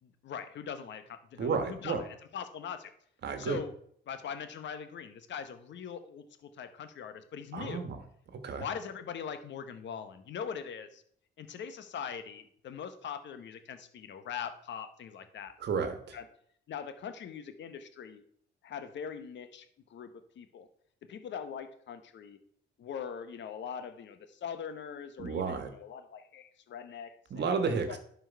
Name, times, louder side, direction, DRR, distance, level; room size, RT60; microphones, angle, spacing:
voice 1, 0.0-2.9 3.4-3.7 4.1-7.8 8.6-11.0 11.4-15.5 16.1-16.2 16.7-18.2 18.6-20.1 20.4-20.7 21.1-22.4 22.8-27.4, left 7 dB, 65° left, 9 dB, 1.1 m, -41 dB
voice 2, 1.4-2.0 3.2-3.6 7.5-8.0 8.4-8.7 15.6-16.2 25.2-25.7 27.3-28.0, right 5 dB, 60° right, 7 dB, 1.4 m, -32 dB
11.0 x 4.6 x 4.6 m, 0.65 s
cardioid pair, 90°, 20 cm